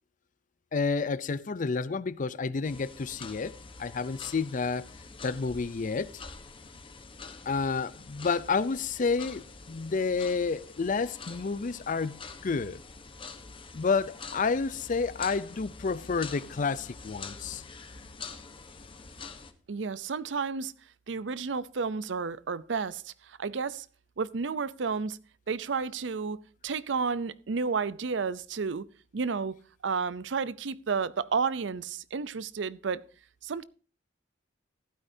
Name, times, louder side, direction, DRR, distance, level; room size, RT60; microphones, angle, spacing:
voice 1, 0.7-4.9 5.2-6.1 7.5-12.8 13.7-17.6, left 4 dB, 45° left, 0.5 m, -30 dB
sound 1, 2.6-19.5, left 4 dB, 30° left, 1.0 m, -46 dB
voice 2, 19.7-20.7 21.1-23.9 24.2-25.2 25.5-28.8 29.1-29.6 29.8-33.0 33.4-33.6, right 5 dB, 85° right, 0.6 m, -31 dB
15.0 x 12.5 x 2.7 m
head